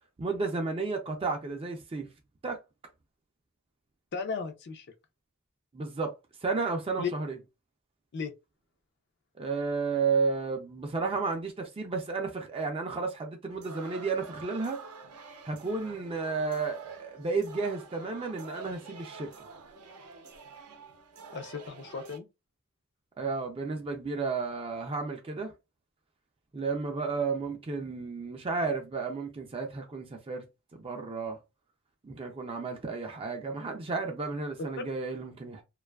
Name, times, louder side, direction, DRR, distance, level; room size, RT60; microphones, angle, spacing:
voice 1, 0.2-2.1 2.4-2.6 5.7-6.1 6.4-7.4 9.4-14.8 15.4-19.3 23.2-25.5 26.5-30.4 30.7-31.4 32.0-35.6, right 4 dB, 25° right, 0.3 m, -32 dB
voice 2, 4.1-4.9 7.0-7.1 8.1-8.3 21.3-22.3 34.8-34.9, left 5 dB, 50° left, 0.4 m, -35 dB
sound 1, 13.5-22.2, right 3 dB, 85° right, 0.5 m, -48 dB
2.5 x 2.3 x 2.2 m
head